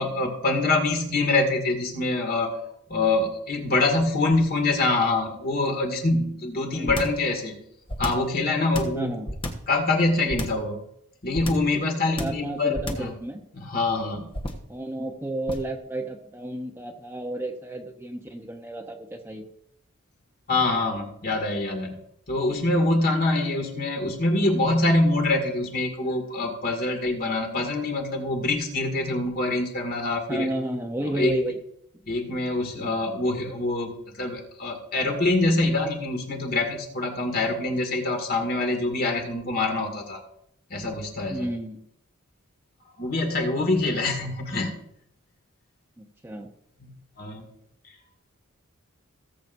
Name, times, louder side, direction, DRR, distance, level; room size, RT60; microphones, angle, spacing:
voice 1, 0.0-2.6 2.9-7.6 8.0-9.1 9.7-10.8 11.2-13.2 13.5-14.3 20.5-22.0 22.3-30.5 31.1-31.3 32.1-40.2 40.7-41.5 43.0-44.8 46.8-46.9 47.2-47.5, left 2 dB, 45° left, 2 dB, 2.1 m, -25 dB
sound 1, 6.9-7.2 7.9-8.3 8.7-9.7 10.3-10.7 11.3-11.7 12.2-12.5 12.7-13.2 14.3-14.7 15.5-15.8, left 1 dB, 25° left, 1.2 m, -31 dB
voice 2, 8.9-9.3 12.2-13.4 14.7-19.5 30.3-31.6 41.3-41.9 46.0-46.5, right 1 dB, 10° right, 2 dB, 0.9 m, -32 dB
18.0 x 7.6 x 2.7 m, 0.72 s
head